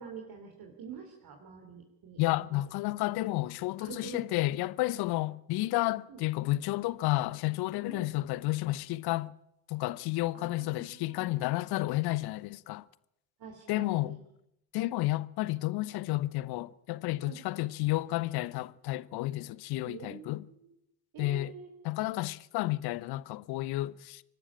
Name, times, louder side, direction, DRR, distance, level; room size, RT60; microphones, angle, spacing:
voice 1, 0.0-2.6 3.8-4.2 6.1-6.2 7.9-8.1 10.3-11.3 13.4-14.2 17.2-17.4 19.8-20.7 21.1-21.7, right 6 dB, 50° right, 3.5 m, -47 dB
voice 2, 2.2-9.3 9.7-12.9 13.7-14.2 14.7-20.4 21.2-21.5 21.8-24.2, left 18 dB, 55° left, 0.9 m, -31 dB
24.0 x 12.5 x 8.9 m
hypercardioid pair, 60°, 46 cm